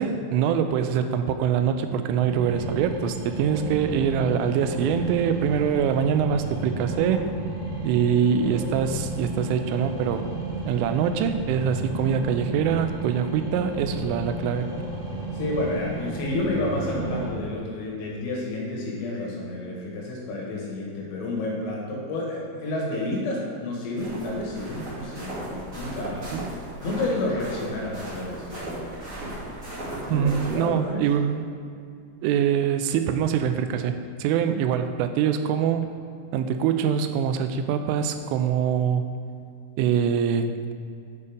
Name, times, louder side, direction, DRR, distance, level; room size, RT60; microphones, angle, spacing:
voice 1, 0.0-7.3 7.8-10.3 10.7-14.7 26.3-26.4 30.1-31.6 32.2-35.9 36.3-39.0 39.8-40.7, right 8 dB, 85° right, 8 dB, 3.0 m, -24 dB
sound 1, 2.1-17.3, right 2 dB, 65° right, 2.4 m, -33 dB
voice 2, 15.3-26.3 26.8-29.0 30.1-31.0, left 2 dB, 85° left, -3 dB, 4.5 m, -30 dB
sound 2, 24.0-30.6, right 1 dB, 30° right, 1.4 m, -37 dB
8.5 x 6.7 x 5.2 m, 2.4 s
omnidirectional pair, 5.8 m